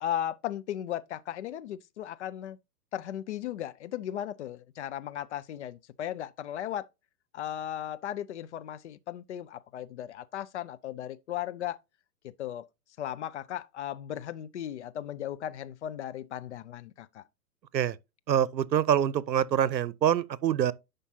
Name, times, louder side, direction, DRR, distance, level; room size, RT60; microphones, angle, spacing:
voice 1, 0.0-2.6 2.9-6.9 7.3-11.8 12.2-12.7 13.0-17.2, left 11 dB, 45° left, 0.6 m, -36 dB
voice 2, 18.3-20.7, right 9 dB, 80° right, 0.8 m, -25 dB
11.0 x 5.2 x 2.8 m
hypercardioid pair, 125°, 50 cm